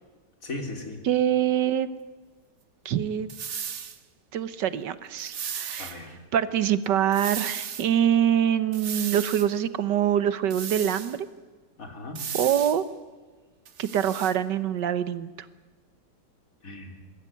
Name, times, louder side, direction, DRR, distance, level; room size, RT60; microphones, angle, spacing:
voice 1, 0.4-1.0 5.8-6.2 11.8-12.3 16.6-17.0, left 2 dB, 50° left, 4 dB, 3.7 m, -37 dB
voice 2, 1.1-1.9 2.9-3.3 4.3-5.9 6.3-11.2 12.3-12.8 13.8-15.3, right 10 dB, 80° right, 14 dB, 1.6 m, -24 dB
sound 1, 3.3-4.0 5.2-6.0 7.1-7.9 8.7-9.5 10.5-11.2 12.2-12.8 13.7-14.4, right 7 dB, 45° right, 1.2 m, -35 dB
22.5 x 15.5 x 9.6 m, 1.3 s
omnidirectional pair, 1.9 m